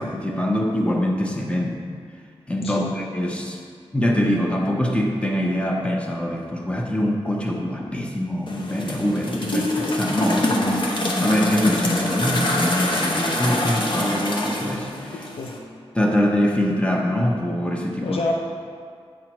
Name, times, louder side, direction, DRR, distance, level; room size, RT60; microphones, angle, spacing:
voice 1, 0.0-1.8 2.5-3.6 3.9-15.3 15.9-18.2, equal, 10° left, 0 dB, 0.8 m, -24 dB
sound 1, 8.5-15.6, left 1 dB, 50° left, 0.9 m, -25 dB
voice 2, 15.1-15.5 18.0-18.3, left 3 dB, 65° left, 1 dB, 0.5 m, -28 dB
8.5 x 5.7 x 3.0 m, 2.2 s
wide cardioid pair, 105°, 10 cm